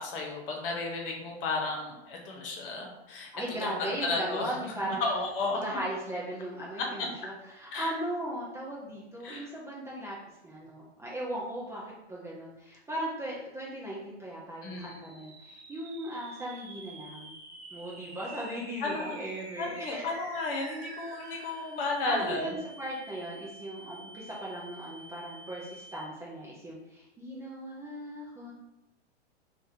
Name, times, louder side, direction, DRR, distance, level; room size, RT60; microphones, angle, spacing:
voice 1, 0.0-3.3 3.6-5.6 7.7-7.9 9.2-9.5 14.6-15.0 18.8-19.2 19.6-22.5, left 3 dB, 55° left, 0 dB, 1.0 m, -33 dB
voice 2, 3.3-5.0 5.5-10.2 10.4-17.3 17.7-20.0 22.1-28.5, right 1 dB, 10° right, -6 dB, 0.4 m, -38 dB
sound 1, 15.0-26.4, right 3 dB, 70° right, 0.8 m, -48 dB
2.5 x 2.5 x 4.1 m, 0.93 s
hypercardioid pair, 120°, 33 cm